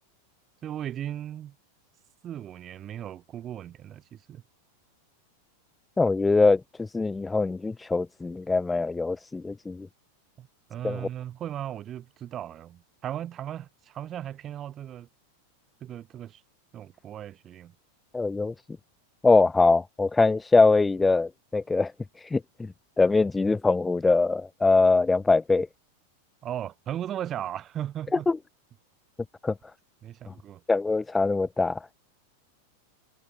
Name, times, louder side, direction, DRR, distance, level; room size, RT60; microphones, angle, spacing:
voice 1, 0.6-1.6 2.2-4.4 10.4-15.1 15.8-16.4 16.7-17.8 26.4-28.3 30.0-30.6, right 11 dB, 30° right, 7.1 m, -37 dB
voice 2, 6.0-9.9 10.8-11.0 18.1-18.5 19.2-21.9 22.2-25.7 28.3-28.4 29.4-29.5 30.7-31.9, left 3 dB, 10° left, 0.4 m, -23 dB
figure-of-eight pair, 90°, 0 cm